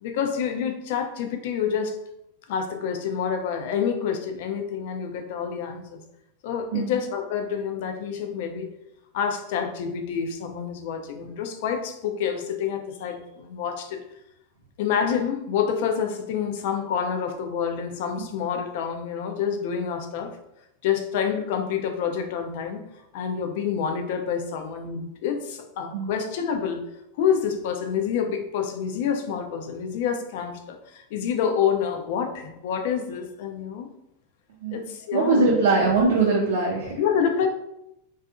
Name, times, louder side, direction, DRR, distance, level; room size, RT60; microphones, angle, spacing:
voice 1, 0.0-2.0 2.5-6.0 6.4-8.7 9.1-14.0 14.8-20.4 20.8-22.8 23.1-26.8 27.2-33.9 34.7-35.6 37.0-37.5, left 7 dB, 60° left, 5 dB, 0.4 m, -27 dB
voice 2, 35.1-36.9, right 3 dB, 75° right, -4 dB, 0.5 m, -21 dB
2.6 x 2.3 x 2.4 m, 0.84 s
hypercardioid pair, 100°, 0 cm